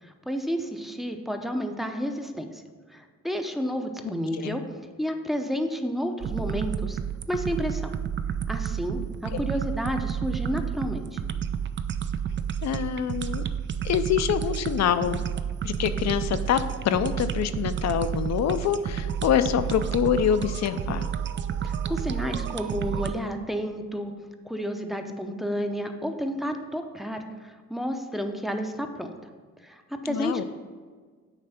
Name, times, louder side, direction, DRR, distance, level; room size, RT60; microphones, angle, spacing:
voice 1, 0.0-2.6 2.9-4.6 5.0-7.0 7.3-7.9 8.5-11.2 21.6-24.1 24.4-29.1 29.6-30.4, equal, ahead, 5 dB, 0.6 m, -31 dB
sound 1, 6.2-23.1, right 8 dB, 40° right, 0.4 m, -30 dB
voice 2, 12.6-13.4 13.8-15.2 15.6-16.6 16.8-21.1 30.0-30.4, left 9 dB, 60° left, 11 dB, 0.6 m, -25 dB
8.9 x 3.3 x 5.7 m, 1.5 s
cardioid pair, 90°, 30 cm